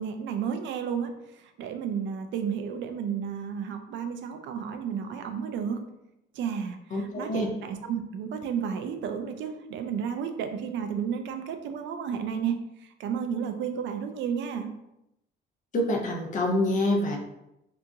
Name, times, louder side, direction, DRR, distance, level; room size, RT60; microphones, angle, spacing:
voice 1, 0.0-5.8 6.3-14.7, right 7 dB, 80° right, 7 dB, 0.5 m, -32 dB
voice 2, 6.9-7.5 15.7-17.2, left 1 dB, 45° left, 1 dB, 0.7 m, -26 dB
2.9 x 2.5 x 3.5 m, 0.86 s
cardioid pair, 130°, 19 cm